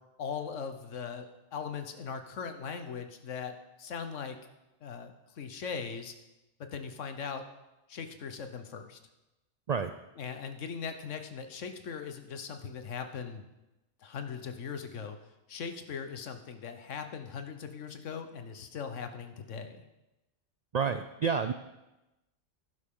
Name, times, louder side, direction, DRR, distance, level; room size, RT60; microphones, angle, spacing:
voice 1, 0.2-4.4 4.8-6.1 6.6-7.4 7.9-9.0 10.2-13.4 14.0-15.2 15.5-19.8, left 6 dB, 85° left, 7 dB, 1.3 m, -39 dB
voice 2, 20.7-21.5, right 6 dB, 70° right, 9 dB, 0.3 m, -29 dB
11.5 x 11.0 x 3.7 m, 0.99 s
omnidirectional pair, 1.2 m